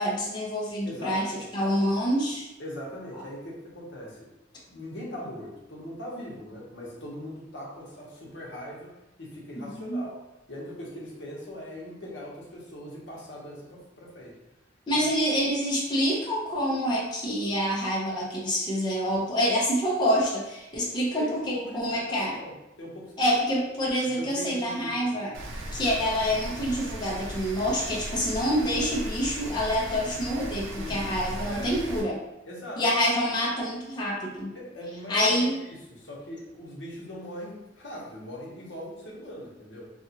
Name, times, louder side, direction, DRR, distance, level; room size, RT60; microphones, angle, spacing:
voice 1, 0.0-2.5 9.6-10.0 14.9-22.4 23.2-25.3 25.7-32.2 32.8-34.5 35.1-35.6, equal, 25° left, -5 dB, 0.6 m, -27 dB
voice 2, 0.8-1.5 2.6-4.3 4.7-8.9 9.2-10.2 10.5-14.3 21.2-23.1 24.2-25.1 30.8-31.0 31.5-31.7 32.4-32.8 34.5-35.4 35.6-39.9, equal, 65° left, -4 dB, 0.8 m, -40 dB
Rain, 25.3-32.0, right 1 dB, 90° right, 0.5 m, -37 dB
2.8 x 2.3 x 2.7 m, 0.92 s
head